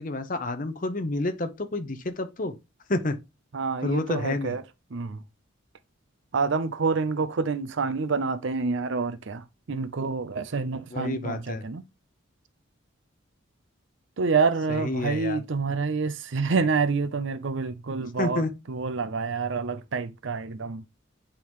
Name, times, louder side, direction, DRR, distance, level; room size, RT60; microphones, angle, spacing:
voice 1, 0.0-2.5 2.9-3.2 3.8-4.6 10.9-11.6 14.7-15.4 18.2-18.5, left 2 dB, 40° left, 0.7 m, -29 dB
voice 2, 3.5-4.6 4.9-5.2 6.3-11.8 14.2-20.8, right 4 dB, 65° right, 0.6 m, -27 dB
8.5 x 3.7 x 3.0 m
head